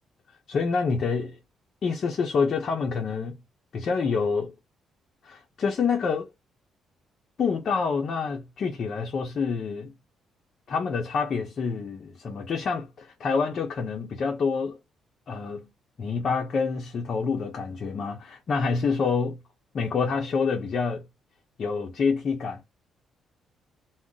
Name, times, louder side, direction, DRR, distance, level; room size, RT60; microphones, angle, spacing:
voice 1, 0.5-1.4 1.8-3.4 3.7-4.5 5.2-6.3 7.4-9.9 10.7-14.8 15.3-15.7 16.0-19.4 19.7-21.1 21.6-22.6, left 5 dB, 55° left, 0.7 m, -27 dB
2.5 x 2.0 x 3.8 m
cardioid pair, 90°, 0 cm